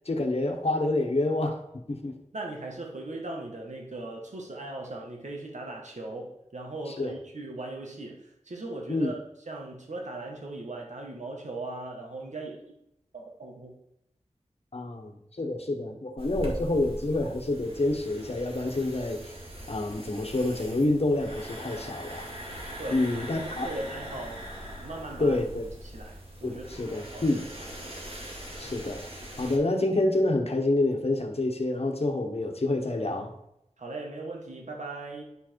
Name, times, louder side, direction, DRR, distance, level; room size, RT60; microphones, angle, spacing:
voice 1, 0.0-1.6 1.9-2.1 6.9-7.2 8.9-9.1 14.7-19.3 19.7-22.3 22.9-23.7 25.2-25.7 26.4-27.4 28.6-33.3, left 2 dB, 55° left, 4 dB, 1.3 m, -28 dB
voice 2, 2.3-8.2 8.5-9.2 9.5-12.6 13.1-13.7 22.8-23.0 23.3-24.5 24.8-25.4 25.8-27.2 33.8-35.2, right 2 dB, 75° right, 0 dB, 1.7 m, -38 dB
sound 1, 16.2-29.6, equal, 55° right, 2.2 m, -41 dB
10.0 x 4.9 x 4.7 m, 0.81 s
wide cardioid pair, 70°, 12 cm